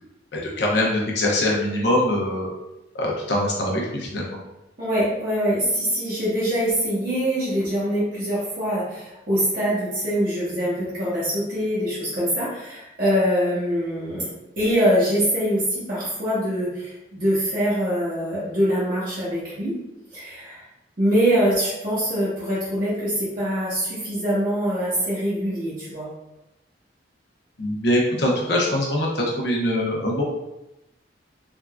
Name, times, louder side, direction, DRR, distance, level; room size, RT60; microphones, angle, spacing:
voice 1, 0.3-2.5 2.9-4.2 27.6-30.2, left 1 dB, 60° left, -3 dB, 0.7 m, -23 dB
voice 2, 4.8-19.7 20.1-20.6 21.0-26.1, equal, 45° right, -9 dB, 0.9 m, -24 dB
3.5 x 2.4 x 2.3 m, 0.94 s
head